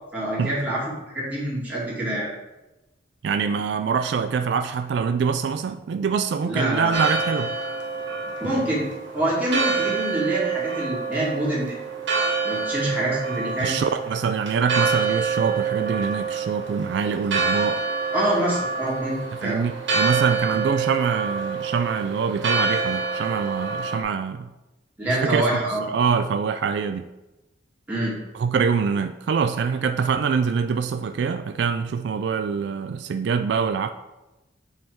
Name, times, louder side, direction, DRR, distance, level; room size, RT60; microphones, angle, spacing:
voice 1, 0.1-2.3 6.5-7.0 8.4-8.9 9.1-11.8 12.4-13.7 18.1-19.1 19.4-19.6 25.0-25.8 27.9-28.2, right 1 dB, 10° right, -7 dB, 2.3 m, -25 dB
voice 2, 3.2-7.5 13.6-17.8 19.4-24.5 25.1-25.6 25.9-27.1 28.3-33.9, right 6 dB, 70° right, 8 dB, 0.3 m, -24 dB
Church bell, 6.9-24.0, right 5 dB, 85° right, 1.6 m, -27 dB
7.6 x 3.5 x 4.6 m, 1.0 s
head